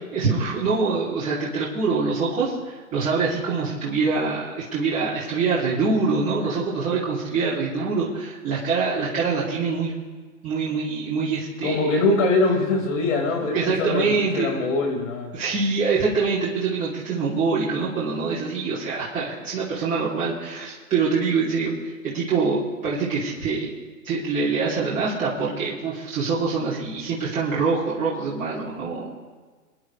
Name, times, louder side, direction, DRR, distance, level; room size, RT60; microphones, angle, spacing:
voice 1, 0.1-9.9 10.4-11.8 13.5-14.6 15.3-23.7 24.0-29.2, right 4 dB, 15° right, -8 dB, 2.7 m, -25 dB
voice 2, 11.6-15.3, left 2 dB, 50° left, 1 dB, 5.1 m, -23 dB
30.0 x 10.5 x 3.3 m, 1.4 s
hypercardioid pair, 145°, 48 cm